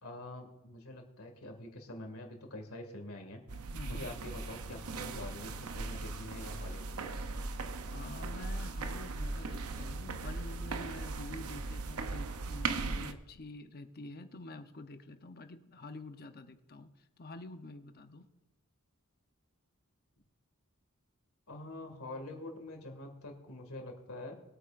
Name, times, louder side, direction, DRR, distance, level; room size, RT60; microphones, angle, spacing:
voice 1, 0.0-3.4 3.9-7.1 21.5-24.3, left 1 dB, 75° left, 4 dB, 2.1 m, -45 dB
sound 1, 3.5-13.1, right 3 dB, 85° right, 0.7 m, -38 dB
voice 2, 3.7-4.1 7.9-16.9 17.2-18.3, left 2 dB, 45° left, 8 dB, 0.8 m, -47 dB
22.0 x 8.7 x 2.6 m, 1.1 s
head